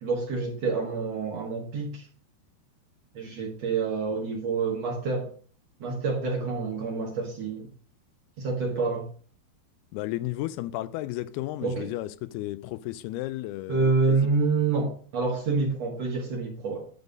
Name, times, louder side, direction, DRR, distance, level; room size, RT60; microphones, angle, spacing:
voice 1, 0.0-2.1 3.1-5.3 5.8-7.7 8.4-9.1 11.6-11.9 13.7-16.9, right 4 dB, 60° right, 1.7 m, -27 dB
voice 2, 9.9-14.2, left 16 dB, 80° left, 2.5 m, -33 dB
10.5 x 4.1 x 5.2 m
omnidirectional pair, 4.7 m